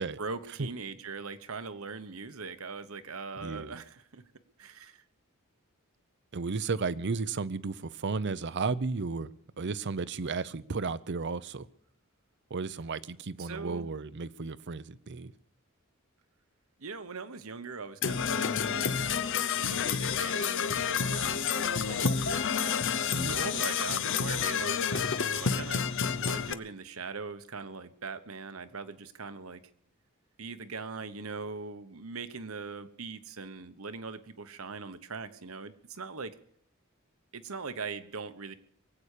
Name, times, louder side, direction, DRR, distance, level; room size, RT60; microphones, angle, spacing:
voice 1, 0.0-4.2 4.6-5.0 13.4-13.9 16.8-22.8 23.3-25.9 26.2-29.6 30.4-36.4 37.3-38.5, right 4 dB, 70° right, 11 dB, 1.1 m, -41 dB
voice 2, 3.3-3.7 6.3-9.3 9.6-11.7 12.5-15.3 23.1-23.4, right 4 dB, 55° right, 17 dB, 0.6 m, -34 dB
Percussion / Brass instrument, 18.0-26.5, left 6 dB, 60° left, 0.8 m, -29 dB
23.0 x 8.7 x 6.7 m, 0.66 s
head